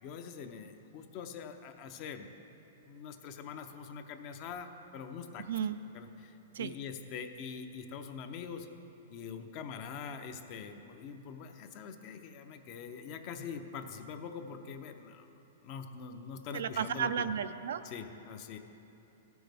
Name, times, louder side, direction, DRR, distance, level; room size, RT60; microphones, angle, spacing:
voice 1, 0.0-2.3 2.9-5.5 5.9-8.7 9.1-17.3 17.8-18.6, left 6 dB, 40° left, 7 dB, 0.6 m, -44 dB
voice 2, 5.5-5.8 6.5-6.7 16.5-17.8, right 8 dB, 75° right, 12 dB, 0.3 m, -33 dB
15.0 x 6.1 x 3.4 m, 2.9 s
hypercardioid pair, 145°, 0 cm